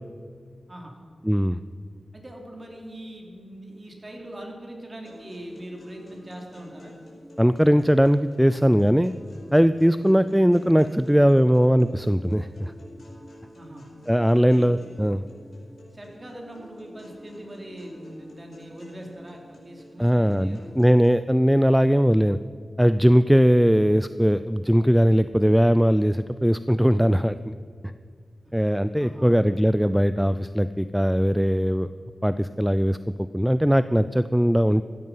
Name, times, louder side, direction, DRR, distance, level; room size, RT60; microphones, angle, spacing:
voice 1, 0.7-1.0 2.1-7.0 13.5-13.9 14.3-14.7 15.9-20.7 28.4-28.5 29.0-29.3, right 1 dB, 30° right, 1 dB, 3.1 m, -41 dB
voice 2, 1.2-1.6 7.4-9.1 9.5-12.7 14.1-15.2 20.0-22.4 22.8-27.6 28.5-31.9 32.2-34.8, equal, 5° right, 13 dB, 0.4 m, -20 dB
sound 1, 5.1-21.1, left 1 dB, 65° left, 5.1 m, -48 dB
15.5 x 12.5 x 5.6 m, 2.1 s
wide cardioid pair, 80°, 0 cm